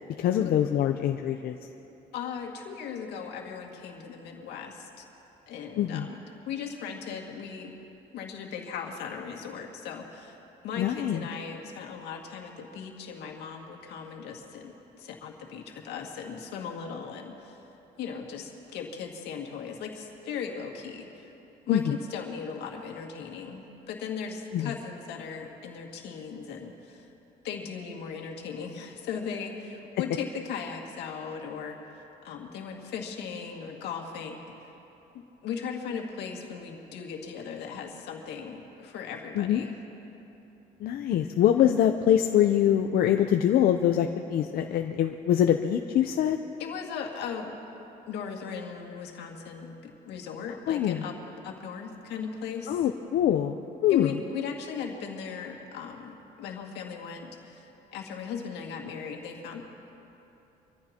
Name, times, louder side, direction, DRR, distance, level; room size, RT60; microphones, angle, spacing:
voice 1, 0.2-1.6 5.8-6.1 10.8-11.2 21.7-21.9 24.5-24.7 39.4-39.6 40.8-46.4 50.7-51.0 52.7-53.6 53.8-54.1, left 10 dB, 65° left, 5 dB, 0.6 m, -24 dB
voice 2, 2.1-5.1 5.5-7.7 8.1-10.4 10.6-17.6 18.0-21.3 21.7-27.1 27.4-34.7 35.4-39.7 46.6-47.6 48.1-51.1 51.4-52.9 53.9-59.6, left 6 dB, 85° left, 1 dB, 2.0 m, -38 dB
25.5 x 14.5 x 2.9 m, 3.0 s
cardioid pair, 110°, 17 cm